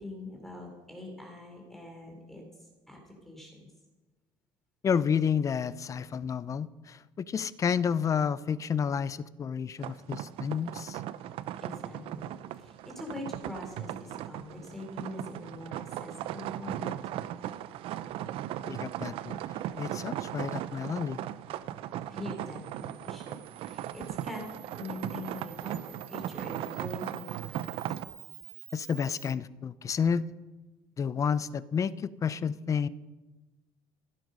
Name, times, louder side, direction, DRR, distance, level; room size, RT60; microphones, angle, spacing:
voice 1, 0.0-2.4 2.9-3.7 11.6-12.3 12.6-17.0 22.1-24.4 24.7-27.6, left 2 dB, 5° left, 1 dB, 3.9 m, -43 dB
voice 2, 4.8-11.0 18.6-19.4 19.8-21.2 28.7-30.2 31.0-32.9, left 7 dB, 35° left, 18 dB, 0.6 m, -30 dB
sound 1, 9.8-28.0, right 12 dB, 70° right, 0.7 m, -38 dB
Camera, 22.3-29.3, right 16 dB, 85° right, 1.3 m, -51 dB
15.5 x 11.5 x 5.4 m, 1.1 s
cardioid pair, 105°, 10 cm